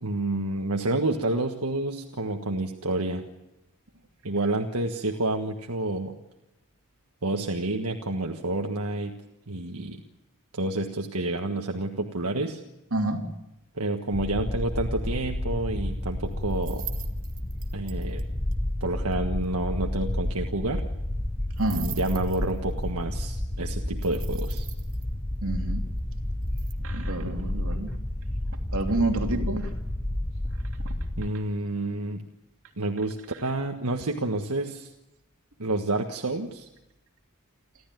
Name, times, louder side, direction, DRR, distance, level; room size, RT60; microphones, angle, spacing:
voice 1, 0.0-3.2 4.2-6.1 7.2-9.2 9.5-10.0 10.5-12.6 13.7-16.8 17.7-18.2 18.8-20.8 21.7-24.7 31.2-32.2 32.8-34.9 35.6-36.7, right 2 dB, 85° right, 3 dB, 1.5 m, -29 dB
voice 2, 12.9-13.2 21.6-21.9 25.4-25.8 26.8-27.9 28.7-29.7 30.8-30.9, right 2 dB, 65° right, 3 dB, 3.0 m, -28 dB
sound 1, 14.1-31.3, left 1 dB, 15° left, 1.0 m, -31 dB
sound 2, 16.5-18.2 18.5-18.6 18.8-18.9 19.1-19.2 19.4-19.5 21.6-22.8 24.0-25.0 26.4-26.7, right 12 dB, 40° right, 1.6 m, -42 dB
29.0 x 13.0 x 9.2 m, 0.96 s
head